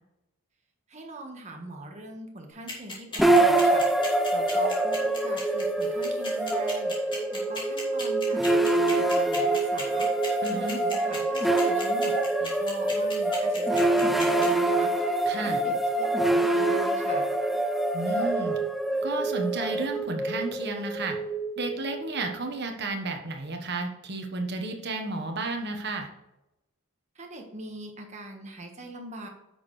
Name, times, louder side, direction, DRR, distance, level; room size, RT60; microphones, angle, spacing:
voice 1, 0.9-8.5 8.7-12.1 12.4-17.3 27.1-29.3, right 2 dB, 30° right, 2 dB, 1.5 m, -43 dB
sound 1, 2.7-14.5, left 2 dB, 20° left, 2.4 m, -36 dB
sound 2, 3.2-22.3, right 2 dB, ahead, 0.3 m, -25 dB
voice 2, 10.4-10.8 15.3-15.6 17.9-18.6 19.0-21.2 21.6-26.1, right 2 dB, 50° right, 3 dB, 1.3 m, -32 dB
9.5 x 6.6 x 3.3 m, 0.93 s
head